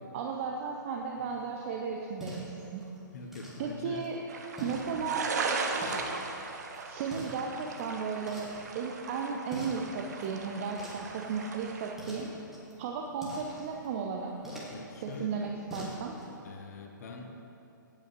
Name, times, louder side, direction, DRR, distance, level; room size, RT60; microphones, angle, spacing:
voice 1, 0.1-2.8 3.6-4.2 4.6-5.3 6.9-12.3 12.8-14.3 15.0-16.2, right 5 dB, 40° right, 1 dB, 0.8 m, -35 dB
sound 1, 1.1-16.4, equal, 5° right, 2.2 m, -47 dB
voice 2, 3.1-4.0 4.6-4.7 14.7-15.5 16.4-17.4, left 4 dB, 50° left, 2 dB, 1.2 m, -44 dB
sound 2, 4.3-11.9, right 4 dB, 55° right, 1.2 m, -37 dB
16.5 x 8.8 x 3.1 m, 2.9 s
figure-of-eight pair, 120°, 11 cm